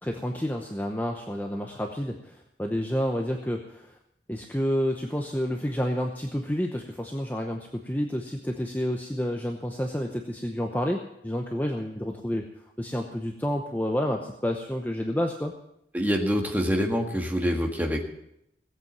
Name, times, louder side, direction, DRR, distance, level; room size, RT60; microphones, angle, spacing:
voice 1, 0.0-4.0 4.3-12.4 12.8-15.5, equal, 10° left, 2 dB, 0.8 m, -29 dB
voice 2, 15.9-18.0, equal, 10° right, 2 dB, 1.7 m, -25 dB
17.0 x 8.2 x 7.4 m, 0.80 s
head